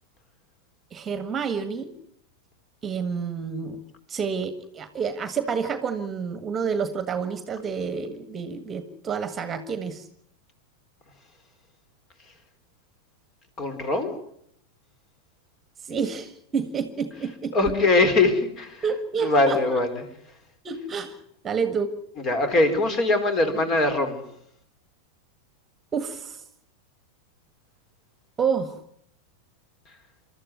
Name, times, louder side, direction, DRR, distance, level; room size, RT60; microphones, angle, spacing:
voice 1, 0.9-1.9 2.8-3.8 4.1-10.1 15.8-17.5 18.8-19.6 20.6-21.2 21.4-21.9 25.9-26.4 28.4-28.8, right 6 dB, 20° right, 11 dB, 1.7 m, -29 dB
voice 2, 13.6-14.1 17.5-18.8 19.2-20.0 22.2-24.2, left 2 dB, 30° left, 8 dB, 4.1 m, -22 dB
28.5 x 13.0 x 9.4 m, 0.71 s
figure-of-eight pair, 90°, 0 cm